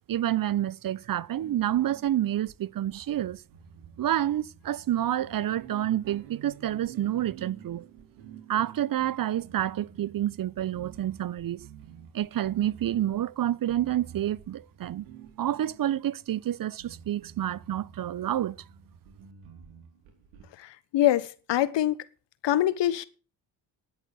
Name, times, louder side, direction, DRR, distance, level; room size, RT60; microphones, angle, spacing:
voice 1, 0.1-3.4 4.0-7.8 8.5-11.7 12.1-15.1 15.4-18.6, right 12 dB, 45° right, 0.7 m, -28 dB
sound 1, 1.4-16.3 16.8-20.4, right 8 dB, 90° right, 3.0 m, -50 dB
voice 2, 20.9-21.9 22.4-23.1, left 13 dB, 65° left, 1.2 m, -23 dB
10.5 x 7.8 x 7.8 m
supercardioid pair, 55°, 46 cm